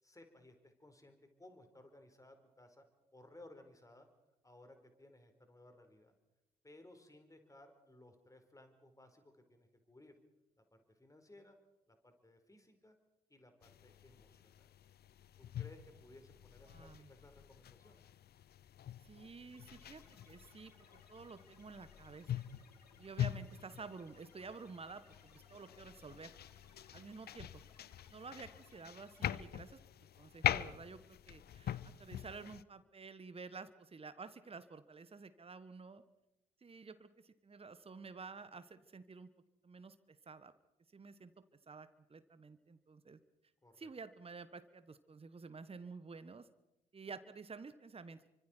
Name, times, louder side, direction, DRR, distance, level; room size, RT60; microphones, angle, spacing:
voice 1, 0.0-2.9 3.1-4.1 4.4-6.1 6.6-10.1 10.6-11.6 11.9-13.0 13.3-14.7 15.4-18.0 43.6-43.9, left 1 dB, 15° left, 6 dB, 4.6 m, -60 dB
sound 1, 13.6-32.6, left 11 dB, 50° left, 0.8 m, -44 dB
voice 2, 16.6-17.1 19.0-20.7 21.1-22.4 23.0-26.3 26.9-27.6 28.1-29.8 30.2-36.0 36.6-39.3 39.6-40.5 40.9-41.3 41.7-43.2 43.8-46.5 46.9-48.2, right 4 dB, 30° right, 12 dB, 1.5 m, -51 dB
sound 2, 19.5-29.3, left 5 dB, 90° left, 2.1 m, -67 dB
29.0 x 25.0 x 4.6 m, 0.92 s
figure-of-eight pair, 40°, 20 cm